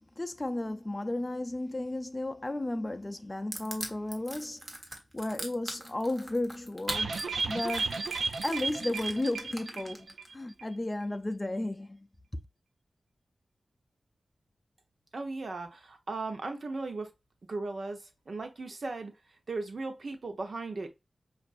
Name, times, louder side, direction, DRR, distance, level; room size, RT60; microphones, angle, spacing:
voice 1, 0.0-4.6 5.1-7.2 7.5-8.1 8.4-12.0, left 2 dB, 25° left, 0.4 m, -34 dB
Crushing, 3.5-10.3, right 1 dB, 35° right, 1.3 m, -41 dB
sound 1, 6.9-10.3 10.6-10.7 11.0-11.1, right 4 dB, 80° right, 0.4 m, -33 dB
voice 2, 15.1-17.1 17.5-19.1 19.5-20.9, right 3 dB, 65° right, 0.8 m, -37 dB
5.1 x 2.5 x 2.5 m
cardioid pair, 45°, 0 cm